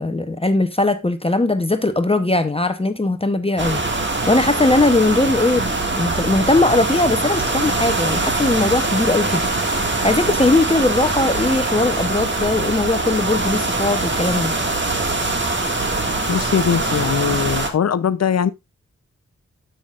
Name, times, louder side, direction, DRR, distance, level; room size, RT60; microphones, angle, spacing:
voice 1, 0.0-5.7 6.0-14.5, left 2 dB, 20° left, 0.9 m, -19 dB
sound 1, 3.6-17.7, right 2 dB, 40° right, 1.8 m, -22 dB
voice 2, 16.3-18.5, left 7 dB, 60° left, 0.7 m, -20 dB
12.5 x 5.8 x 2.4 m
cardioid pair, 65°, 29 cm